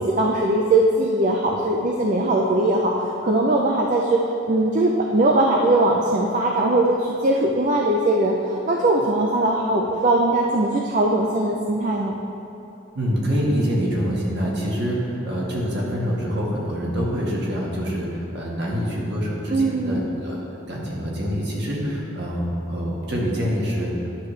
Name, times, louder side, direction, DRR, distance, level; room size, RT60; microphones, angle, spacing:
voice 1, 0.0-12.1 19.5-20.1, right 2 dB, 35° right, 0 dB, 0.4 m, -20 dB
voice 2, 12.9-20.4 20.7-23.9, equal, 55° right, -4 dB, 1.4 m, -25 dB
10.5 x 6.3 x 3.2 m, 2.9 s
head